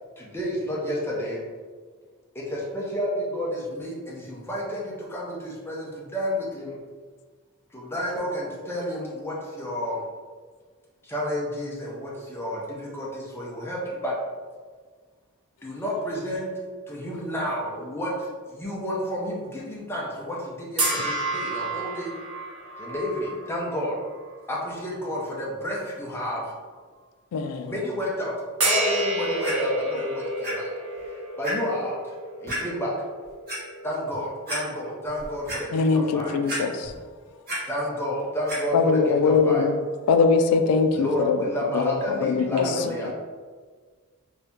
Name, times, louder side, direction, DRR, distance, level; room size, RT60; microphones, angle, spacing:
voice 1, 0.2-1.4 2.3-6.8 7.7-10.0 11.0-14.2 15.6-16.5 16.9-22.1 22.8-24.0 24.5-26.5 27.7-28.3 28.6-30.7 31.0-32.1 32.4-33.0 33.8-36.4 37.7-39.7 40.9-43.1, equal, 10° left, -4 dB, 0.6 m, -31 dB
sound 1, 20.8-24.3 24.8-25.0 28.6-35.0, right 1 dB, 70° right, 1.1 m, -30 dB
Clock, 29.4-29.5 30.4-30.5 31.0-31.1 31.4-31.5 32.5-32.6 33.2-33.6 34.1-34.2 34.5-34.6 35.1-35.6 36.5-37.0 37.3-37.6 38.5-38.6 39.3-39.4, equal, 45° right, 1.4 m, -31 dB
voice 2, 35.7-36.7 38.7-39.8 40.1-41.4 41.7-41.9 42.2-42.7, left 5 dB, 80° left, 11 dB, 0.3 m, -21 dB
voice 3, 42.3-43.1, right 2 dB, 90° right, 1 dB, 0.6 m, -35 dB
2.8 x 2.6 x 3.4 m, 1.5 s
head